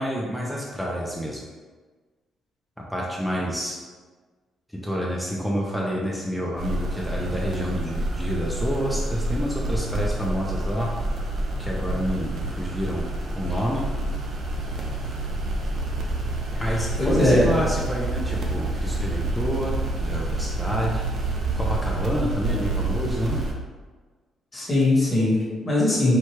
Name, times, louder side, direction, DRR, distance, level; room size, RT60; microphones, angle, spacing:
voice 1, 0.0-1.4 2.9-3.8 4.7-10.9 11.6-13.0 13.4-13.8 16.6-21.0 21.6-23.4, equal, ahead, -4 dB, 0.4 m, -28 dB
sound 1, 6.6-23.5, right 2 dB, 45° right, 0.6 m, -28 dB
voice 2, 16.6-17.4 24.5-26.2, left 2 dB, 20° left, -7 dB, 1.3 m, -21 dB
4.5 x 2.3 x 4.4 m, 1.4 s
cardioid pair, 165°, 0 cm